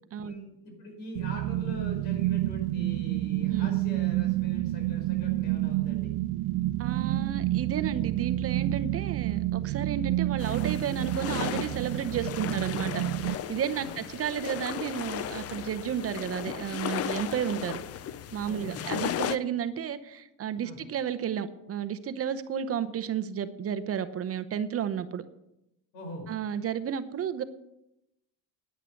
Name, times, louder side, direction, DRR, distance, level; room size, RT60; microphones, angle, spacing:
voice 1, 0.2-6.1 10.1-10.2 13.7-14.0 18.4-18.9 20.6-20.8 25.9-26.3, left 1 dB, 85° left, 2 dB, 5.1 m, -43 dB
sound 1, 1.2-13.4, right 16 dB, 80° right, 0.6 m, -29 dB
voice 2, 6.8-17.8 18.3-25.2 26.3-27.4, right 8 dB, 35° right, 12 dB, 0.7 m, -32 dB
sound 2, 10.4-19.4, left 10 dB, 35° left, 0.5 m, -36 dB
9.9 x 9.9 x 6.4 m, 0.85 s
cardioid pair, 135°, 41 cm